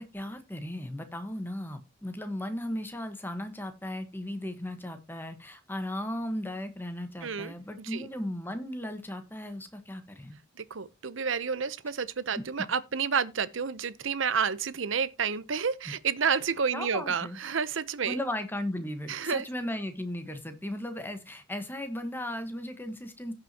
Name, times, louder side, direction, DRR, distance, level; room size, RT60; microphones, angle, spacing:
voice 1, 0.0-10.4 12.4-12.5 16.7-17.4 18.1-23.3, left 1 dB, 10° left, 1.3 m, -36 dB
voice 2, 7.2-8.1 10.6-18.2 19.1-19.5, right 6 dB, 70° right, 0.7 m, -30 dB
16.5 x 6.1 x 2.9 m
head